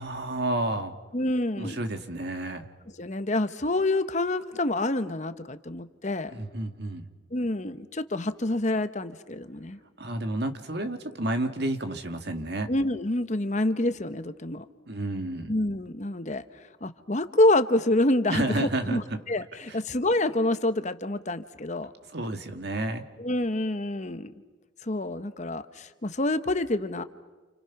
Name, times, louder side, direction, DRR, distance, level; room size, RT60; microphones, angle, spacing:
voice 1, 0.0-0.9 1.6-2.7 6.3-7.1 10.0-12.7 14.9-15.5 18.3-19.2 19.7-19.8 22.1-23.0, right 1 dB, 55° right, 7 dB, 2.0 m, -30 dB
voice 2, 1.1-1.8 3.0-6.3 7.3-9.8 12.7-14.6 15.5-16.4 16.8-19.0 19.3-21.9 23.2-24.3 24.8-27.0, left 1 dB, 35° left, 11 dB, 1.0 m, -27 dB
29.5 x 29.0 x 6.0 m, 1.2 s
head